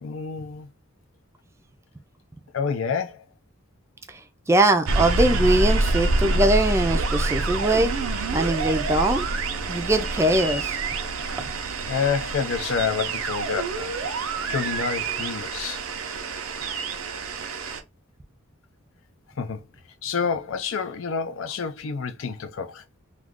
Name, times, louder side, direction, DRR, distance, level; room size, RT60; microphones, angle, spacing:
voice 1, 0.0-0.7 2.5-3.2 11.9-14.2 14.5-15.8 19.4-19.6 20.0-22.8, left 6 dB, 75° left, 0.5 m, -28 dB
voice 2, 4.5-7.9 8.3-9.3 9.7-10.8, right 1 dB, 15° right, 0.3 m, -21 dB
sound 1, 4.9-17.8, right 3 dB, 90° right, 0.6 m, -27 dB
2.4 x 2.3 x 3.5 m
head